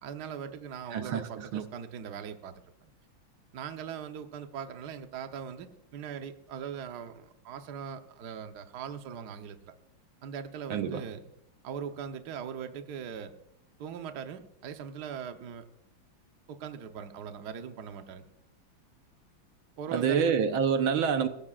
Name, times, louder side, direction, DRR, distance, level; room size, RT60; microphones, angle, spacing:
voice 1, 0.0-2.9 3.5-9.7 10.2-11.3 11.6-13.3 13.8-15.6 16.5-18.2 19.8-20.3, right 7 dB, 55° right, 6 dB, 1.4 m, -40 dB
voice 2, 0.9-1.7 10.7-11.0 19.9-21.3, right 7 dB, 75° right, 7 dB, 1.7 m, -27 dB
24.0 x 15.0 x 2.4 m, 0.75 s
omnidirectional pair, 2.3 m